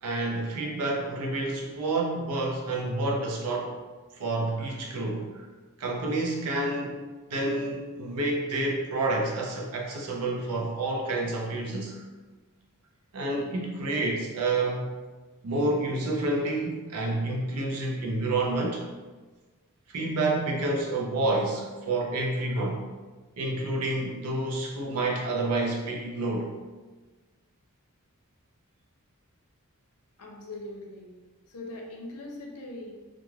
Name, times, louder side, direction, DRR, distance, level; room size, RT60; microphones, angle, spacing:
voice 1, 0.0-3.8 4.1-5.4 5.8-7.0 7.3-12.0 13.1-14.9 15.4-18.8 19.9-22.8 23.4-26.5, right 2 dB, 85° right, -1 dB, 0.6 m, -29 dB
voice 2, 30.2-31.1 31.5-32.9, left 2 dB, 85° left, 1 dB, 0.6 m, -41 dB
3.1 x 2.4 x 2.3 m, 1.3 s
head